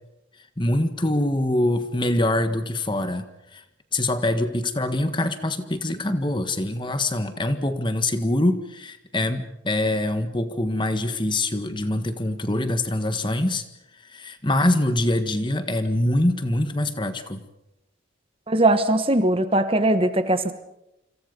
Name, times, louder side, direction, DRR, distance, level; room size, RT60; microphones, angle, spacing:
voice 1, 0.6-3.2 3.5-3.6 3.9-13.6 14.0-17.4, left 1 dB, 25° left, 9 dB, 1.6 m, -24 dB
voice 2, 18.5-20.5, right 1 dB, 30° right, 10 dB, 1.3 m, -20 dB
28.5 x 26.5 x 5.4 m, 0.88 s
head